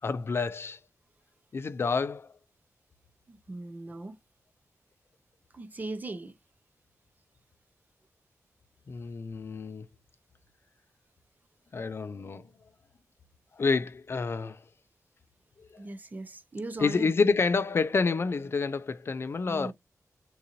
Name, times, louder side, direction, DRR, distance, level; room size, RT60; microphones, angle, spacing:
voice 1, 0.0-0.8 1.5-2.3 8.9-9.9 11.7-12.5 13.6-14.6 15.6-15.7 16.8-19.7, left 4 dB, 45° left, 0.4 m, -28 dB
voice 2, 3.3-4.2 5.5-6.3 15.8-17.3 19.5-19.7, right 2 dB, 30° right, 0.6 m, -39 dB
3.8 x 2.9 x 2.6 m
wide cardioid pair, 160°, 6 cm